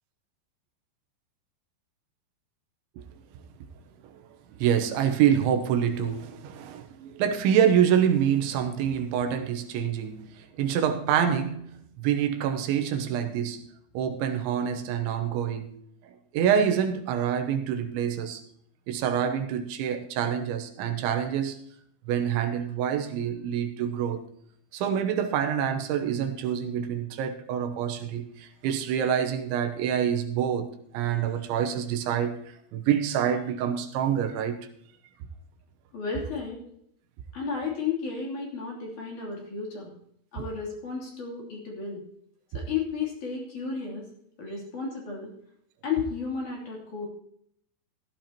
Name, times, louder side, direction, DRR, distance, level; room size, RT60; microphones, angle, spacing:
voice 1, 4.6-11.7 12.0-13.6 13.9-15.7 16.3-18.4 18.9-21.6 22.1-24.2 24.7-34.6, right 8 dB, 85° right, 6 dB, 3.3 m, -26 dB
voice 2, 35.9-36.6 37.3-39.9 40.3-42.0 42.5-44.1 44.4-45.3 45.8-47.1, left 5 dB, 45° left, -2 dB, 4.2 m, -33 dB
16.5 x 14.0 x 2.9 m, 0.70 s
omnidirectional pair, 5.3 m